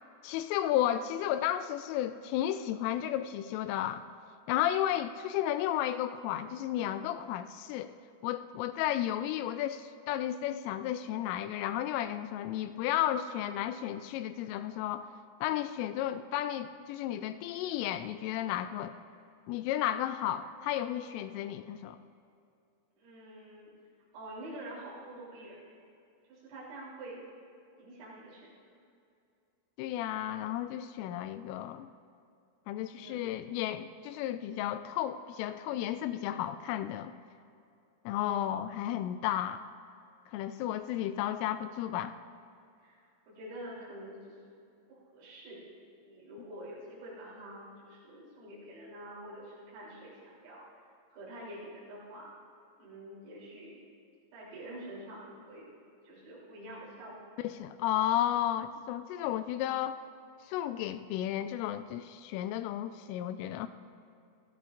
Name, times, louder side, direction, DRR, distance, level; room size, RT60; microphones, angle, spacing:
voice 1, 0.2-4.0 4.5-7.9 8.2-15.1 15.4-18.9 19.5-22.0 29.8-31.9 32.7-37.1 38.1-39.6 40.3-42.1 57.4-60.0 60.5-63.7, left 12 dB, 85° left, 10 dB, 3.0 m, -33 dB
voice 2, 23.0-23.7 24.1-25.6 26.3-27.2 27.8-28.5 33.0-33.3 42.8-43.0 43.3-44.4 44.9-45.6 46.0-50.6 51.1-52.3 52.8-53.8 54.3-55.7 56.0-57.2, right 1 dB, 85° right, -8 dB, 6.1 m, -46 dB
27.0 x 16.0 x 2.5 m, 2.5 s
omnidirectional pair, 5.9 m